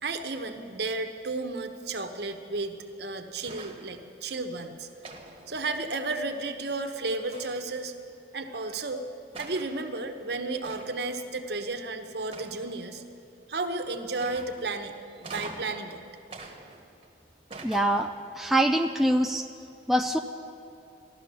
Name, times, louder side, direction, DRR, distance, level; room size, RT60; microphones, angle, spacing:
voice 1, 0.0-4.9 5.5-7.9 8.3-9.1 9.4-13.0 13.5-16.0, right 3 dB, 60° right, 6 dB, 1.0 m, -33 dB
sound 1, 3.4-3.9 5.0-6.1 7.3-7.8 8.7-8.8 9.3-9.8 10.6-11.1 12.3-12.9 14.2-14.7 15.2-15.8 16.3-17.1 17.5-18.2, right 3 dB, 30° right, 1.3 m, -44 dB
voice 2, 17.6-19.5 19.9-20.2, right 1 dB, ahead, 4 dB, 0.3 m, -24 dB
15.0 x 12.0 x 6.8 m, 2.6 s
head